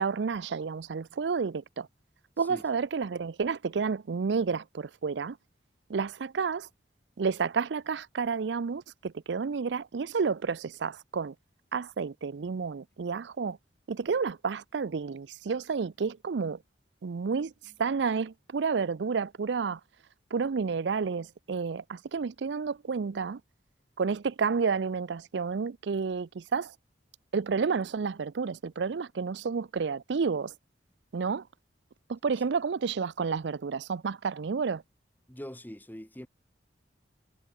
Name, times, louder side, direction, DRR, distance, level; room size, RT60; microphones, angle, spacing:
voice 1, 0.0-1.9 2.4-5.4 5.9-6.7 7.2-11.3 11.7-13.6 13.9-16.6 17.0-17.5 17.8-19.8 20.3-23.4 24.0-26.7 27.3-30.5 31.1-31.4 32.1-34.8, right 5 dB, 70° right, 0.5 m, -30 dB
voice 2, 2.4-2.8 35.3-36.3, equal, 10° left, 1.8 m, -43 dB
head